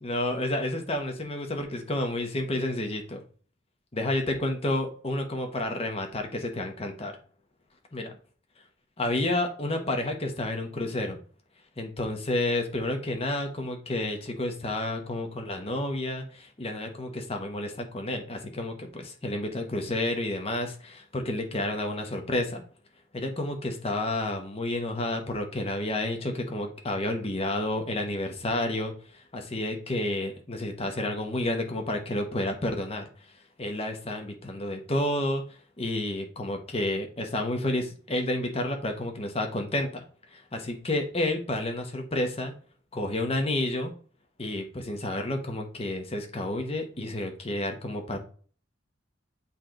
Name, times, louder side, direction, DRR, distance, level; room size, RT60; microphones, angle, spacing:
voice 1, 0.0-3.2 3.9-7.1 7.9-8.2 9.0-11.2 11.8-22.6 23.1-33.0 33.6-35.4 35.8-40.0 40.3-42.5 42.9-43.9 44.4-48.2, left 1 dB, 30° left, 4 dB, 1.1 m, -30 dB
8.4 x 3.3 x 3.8 m, 0.42 s
head